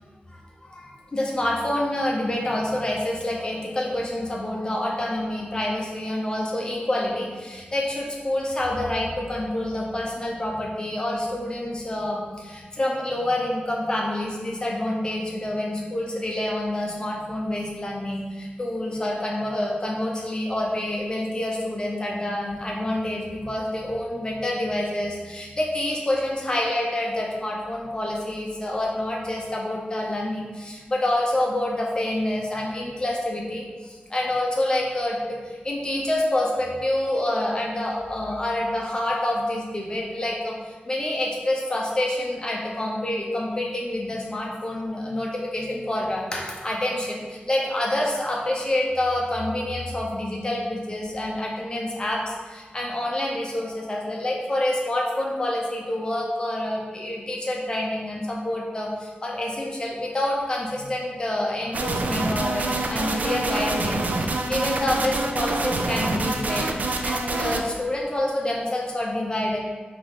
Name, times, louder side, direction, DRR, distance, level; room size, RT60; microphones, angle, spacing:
voice 1, 0.3-69.6, left 1 dB, 25° left, -2 dB, 0.7 m, -27 dB
sound 1, 61.7-67.6, right 2 dB, 50° right, 0.4 m, -26 dB
3.8 x 2.9 x 3.9 m, 1.4 s
wide cardioid pair, 135°, 3 cm